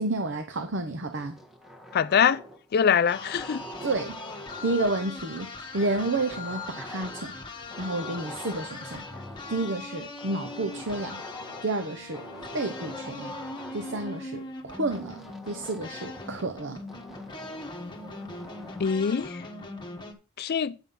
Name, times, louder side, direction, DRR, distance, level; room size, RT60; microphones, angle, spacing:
voice 1, 0.0-1.3 3.8-4.2 4.6-7.3 7.8-9.0 9.5-11.2 11.6-12.2 12.5-13.3 13.7-16.8, right 2 dB, 65° right, 1.0 m, -30 dB
sound 1, 1.1-2.7 3.0-5.1 5.8-7.4 7.7-9.7 10.2-11.8 12.1-14.1 14.9-16.5 16.9-18.9, left 1 dB, ahead, 1.4 m, -44 dB
voice 2, 1.9-2.4 2.7-3.6 18.8-19.4 20.4-20.7, left 7 dB, 50° left, 0.4 m, -23 dB
sound 2, 3.1-20.1, left 3 dB, 25° left, 1.3 m, -40 dB
9.2 x 5.7 x 5.6 m
head